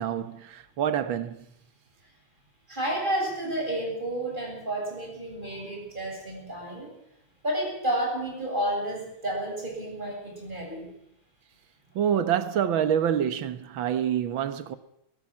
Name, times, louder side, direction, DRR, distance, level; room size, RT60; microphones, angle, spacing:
voice 1, 0.0-1.5 12.0-14.8, right 9 dB, 70° right, 2.0 m, -27 dB
voice 2, 2.7-6.9 7.4-10.9, right 1 dB, 20° right, 8.2 m, -31 dB
23.5 x 15.5 x 7.5 m
omnidirectional pair, 2.2 m